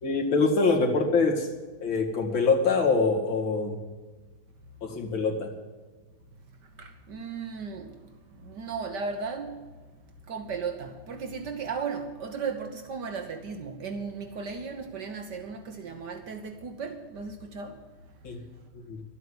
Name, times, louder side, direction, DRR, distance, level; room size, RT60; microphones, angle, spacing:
voice 1, 0.0-1.5 1.8-3.8 4.8-5.5 18.2-18.4 18.7-19.0, left 4 dB, 80° left, 2.8 m, -24 dB
voice 2, 6.8-7.9 8.4-9.6 10.3-17.8, right 5 dB, 65° right, 1.6 m, -35 dB
12.5 x 8.2 x 9.7 m
omnidirectional pair, 2.1 m